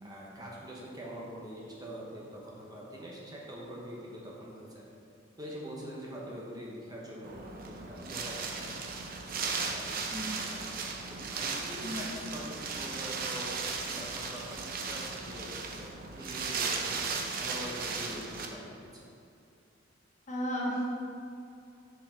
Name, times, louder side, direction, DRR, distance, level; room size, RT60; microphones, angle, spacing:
voice 1, 0.0-4.9 5.4-10.7 11.1-17.0 17.4-19.1, equal, 20° right, -4 dB, 0.9 m, -44 dB
Wind, 7.2-18.5, right 4 dB, 50° right, 0.6 m, -36 dB
voice 2, 20.3-20.8, equal, 40° left, -3 dB, 1.1 m, -33 dB
6.0 x 4.7 x 4.3 m, 2.6 s
head